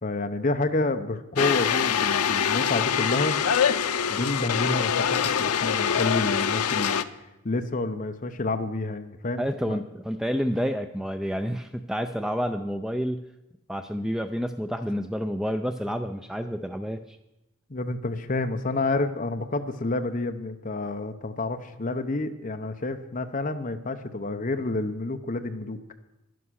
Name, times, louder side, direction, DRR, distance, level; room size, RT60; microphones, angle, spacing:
voice 1, 0.0-3.4 4.1-7.0 7.4-9.8 17.7-25.8, left 2 dB, 35° left, 8 dB, 0.8 m, -29 dB
sound 1, 1.4-7.0, left 8 dB, 85° left, 0.6 m, -24 dB
voice 2, 9.4-13.2 13.7-17.2, equal, ahead, 8 dB, 0.4 m, -29 dB
11.5 x 11.0 x 6.3 m, 0.92 s
head